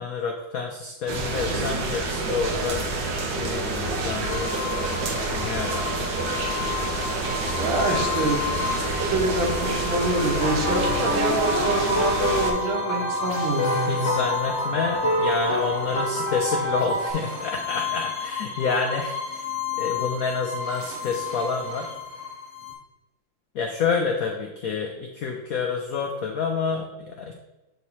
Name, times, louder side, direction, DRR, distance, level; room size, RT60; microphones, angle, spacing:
voice 1, 0.0-2.8 3.4-4.5 5.1-6.1 13.8-19.5 19.8-21.9 23.5-27.3, left 5 dB, 90° left, 3 dB, 0.7 m, -28 dB
sound 1, 1.1-12.5, right 3 dB, 65° right, 1.6 m, -28 dB
sound 2, 4.2-22.7, left 7 dB, 35° right, 1.9 m, -33 dB
voice 2, 7.5-14.1, right 2 dB, 80° right, 0 dB, 2.0 m, -26 dB
sound 3, 10.4-17.1, left 1 dB, 55° left, 0.8 m, -26 dB
8.0 x 3.0 x 4.1 m, 1.0 s
omnidirectional pair, 2.2 m